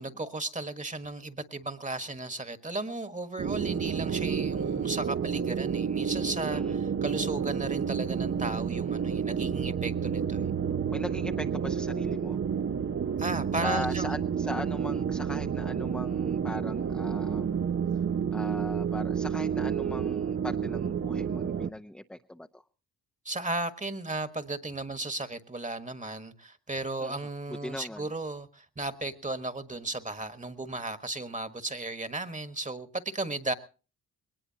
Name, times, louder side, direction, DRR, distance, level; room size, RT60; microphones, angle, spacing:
voice 1, 0.0-10.5 13.2-14.1 23.2-33.5, right 2 dB, 20° right, 10 dB, 1.5 m, -35 dB
sound 1, 3.4-21.7, right 7 dB, 35° right, 0.7 m, -30 dB
voice 2, 10.9-12.4 13.5-17.6 18.3-22.6 27.0-28.1, left 1 dB, ahead, 5 dB, 0.7 m, -39 dB
21.0 x 19.5 x 2.9 m, 0.36 s
supercardioid pair, 60°, 35 cm